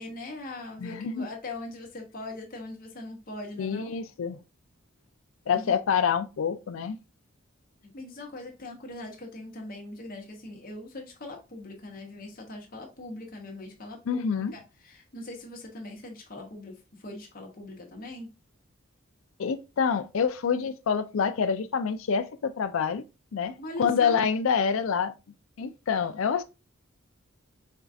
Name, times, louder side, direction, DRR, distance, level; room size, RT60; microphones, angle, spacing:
voice 1, 0.0-3.9 5.5-5.7 7.9-14.2 14.5-18.3 23.6-24.2, left 2 dB, 40° left, 0.9 m, -41 dB
voice 2, 0.8-1.3 3.6-4.4 5.5-7.0 14.1-14.5 19.4-23.0 23.3-25.1 25.6-26.4, left 6 dB, 70° left, 0.4 m, -27 dB
4.4 x 2.4 x 2.5 m
head